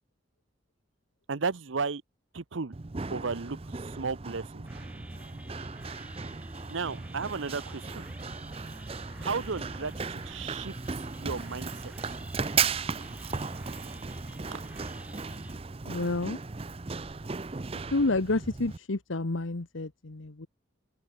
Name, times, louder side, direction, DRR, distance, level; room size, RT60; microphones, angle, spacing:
voice 1, 1.3-2.0 2.3-2.7 3.1-4.6 6.7-8.1 9.2-10.7 11.2-11.9 14.5-14.6, right 4 dB, 80° right, 0.8 m, -34 dB
Run, 2.7-18.8, right 5 dB, 30° right, 0.6 m, -36 dB
sound 1, 4.6-15.5, equal, 5° right, 3.1 m, -47 dB
voice 2, 15.8-16.4 17.9-20.5, left 2 dB, 85° left, 1.2 m, -29 dB
open air
head